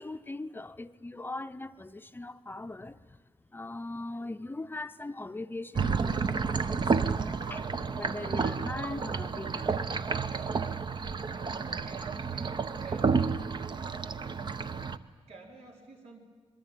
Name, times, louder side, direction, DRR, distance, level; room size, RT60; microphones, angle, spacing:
voice 1, 0.0-3.2 3.5-9.8 10.5-10.8, left 2 dB, 20° left, 0.7 m, -40 dB
sound 1, 5.7-15.0, right 5 dB, 45° right, 0.8 m, -30 dB
voice 2, 11.7-13.1 15.3-16.2, right 3 dB, 85° right, 4.8 m, -50 dB
26.5 x 22.0 x 9.0 m
wide cardioid pair, 115°, 11 cm